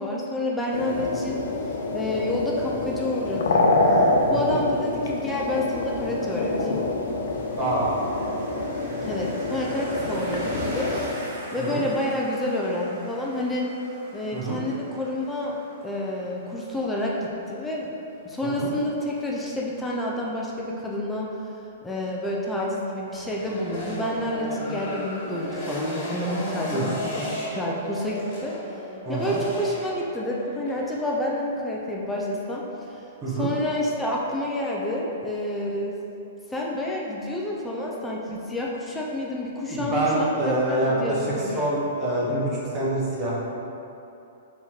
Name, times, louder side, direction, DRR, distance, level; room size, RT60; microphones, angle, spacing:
voice 1, 0.0-1.4 1.9-6.8 9.0-11.2 11.5-13.7 14.1-15.5 15.8-17.9 18.2-21.3 21.8-28.8 29.1-36.0 36.5-41.7, left 1 dB, 10° left, -3 dB, 0.4 m, -29 dB
sound 1, 0.7-11.0, left 2 dB, 65° left, 0.6 m, -26 dB
sound 2, 7.3-20.4, right 1 dB, 45° right, 1.1 m, -42 dB
voice 2, 7.5-8.0 11.6-11.9 14.3-14.6 18.6-18.7 26.7-26.9 29.0-29.4 33.2-33.5 39.7-41.2 41.5-43.4, right 1 dB, 25° right, -6 dB, 0.9 m, -26 dB
sound 3, 23.1-31.2, equal, 40° left, 1.2 m, -34 dB
3.6 x 3.0 x 4.2 m, 2.8 s
hypercardioid pair, 155°, 0 cm